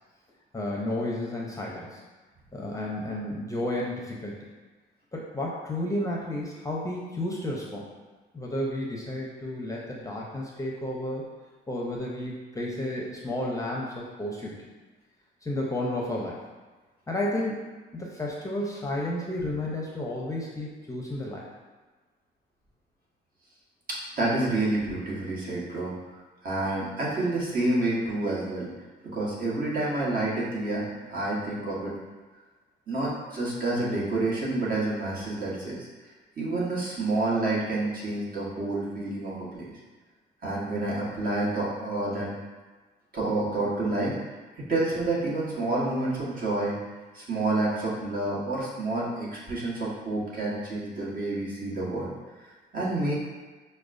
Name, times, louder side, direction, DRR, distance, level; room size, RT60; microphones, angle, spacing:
voice 1, 0.5-2.0 2.5-4.3 5.1-7.9 8.3-11.2 11.7-14.6 15.4-16.4 17.1-17.7 17.9-21.5, left 1 dB, 15° left, -3 dB, 0.6 m, -32 dB
voice 2, 23.9-25.9 26.4-28.7 29.1-31.9 32.9-35.8 36.4-39.7 40.4-42.3 43.1-44.2 44.6-46.7 47.1-52.1 52.7-53.2, right 2 dB, 45° right, -6 dB, 1.3 m, -28 dB
5.9 x 2.2 x 2.5 m, 1.3 s
cardioid pair, 90°, 20 cm